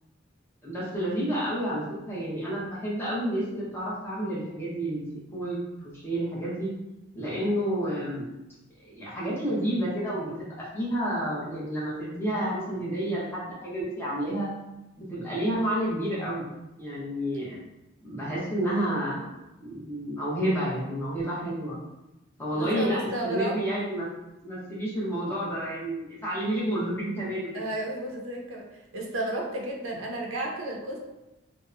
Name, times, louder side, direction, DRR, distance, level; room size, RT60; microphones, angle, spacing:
voice 1, 0.6-5.0 5.3-5.6 5.8-6.7 7.1-8.2 9.0-14.5 15.0-16.4 16.8-17.6 18.0-19.3 19.6-21.8 22.4-23.0 23.2-24.1 24.4-27.6, right 1 dB, 10° left, -8 dB, 0.7 m, -30 dB
voice 2, 22.6-23.6 27.5-31.0, right 1 dB, 90° right, 0 dB, 0.5 m, -33 dB
2.7 x 2.0 x 2.4 m, 0.97 s
head